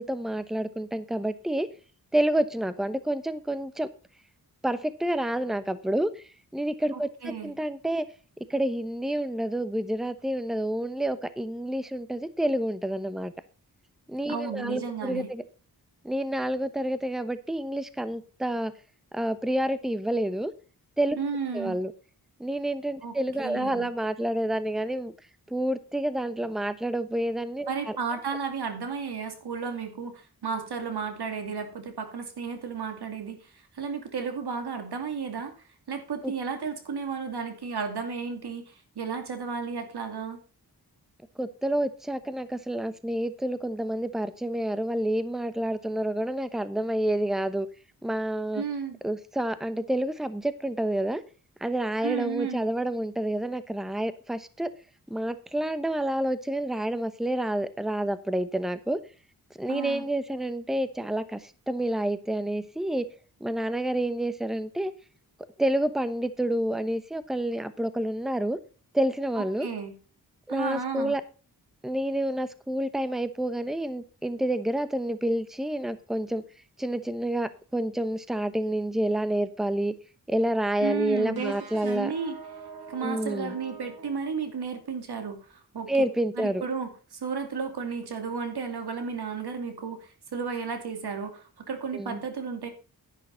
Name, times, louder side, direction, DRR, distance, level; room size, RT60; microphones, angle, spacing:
voice 1, 0.0-1.7 2.1-3.9 4.6-6.2 6.5-8.0 8.5-13.3 14.1-15.4 16.0-18.7 19.1-20.5 21.0-21.2 21.5-21.9 22.4-25.1 25.5-28.0 36.2-36.3 41.4-47.7 48.0-48.6 49.0-51.2 51.6-54.7 55.1-59.0 59.6-63.0 63.4-64.9 65.6-68.6 68.9-69.7 70.5-71.2 71.8-76.4 76.8-79.9 80.3-82.1 83.0-83.5 85.9-86.6 91.9-92.2, right 1 dB, ahead, 0.9 m, -28 dB
voice 2, 6.9-7.5 14.3-15.3 21.2-21.8 23.0-23.2 23.4-23.9 27.7-35.5 35.9-40.4 48.5-49.0 52.0-52.6 59.7-60.1 69.4-70.0 70.5-71.1 80.8-81.6 81.8-82.3 82.9-86.1 86.4-92.7, right 5 dB, 90° right, 2.5 m, -33 dB
sound 1, 81.3-84.9, right 5 dB, 70° right, 2.3 m, -45 dB
10.5 x 10.0 x 3.9 m
wide cardioid pair, 95°, 38 cm